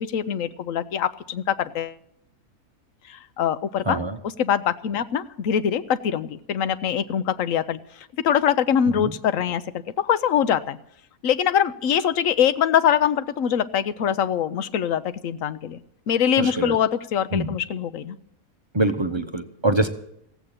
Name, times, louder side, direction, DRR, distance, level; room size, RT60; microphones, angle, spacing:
voice 1, 0.0-2.0 3.1-4.0 4.2-7.8 8.2-9.6 10.0-10.8 11.2-15.8 16.1-18.2, left 9 dB, 65° left, 14 dB, 1.1 m, -23 dB
voice 2, 3.9-4.2 9.0-9.1 16.4-16.8 17.3-17.6 18.7-19.9, right 1 dB, 25° right, 8 dB, 0.7 m, -24 dB
16.5 x 8.2 x 8.9 m, 0.76 s
omnidirectional pair, 1.6 m